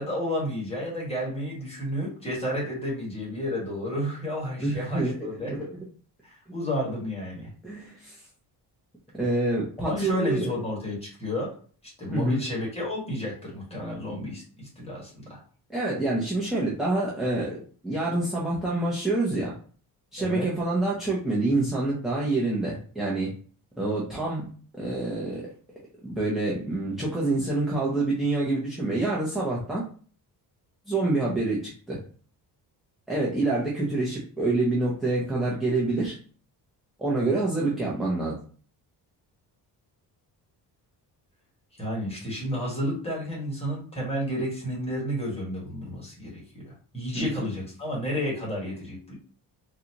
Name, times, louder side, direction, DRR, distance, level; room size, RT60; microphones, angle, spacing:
voice 1, 0.0-5.6 6.2-7.5 9.8-11.5 12.0-15.4 20.2-20.5 41.8-49.1, equal, 15° left, -4 dB, 1.5 m, -31 dB
voice 2, 4.6-5.7 7.6-8.2 9.1-10.6 12.1-12.4 15.7-17.6 17.8-19.5 20.1-23.3 23.8-24.4 24.7-25.4 26.0-29.8 30.9-31.6 31.9-32.0 33.1-36.2 37.0-38.3 47.1-47.3, right 2 dB, ahead, -6 dB, 0.7 m, -27 dB
3.9 x 2.4 x 2.9 m, 0.43 s
cardioid pair, 150°, 40 cm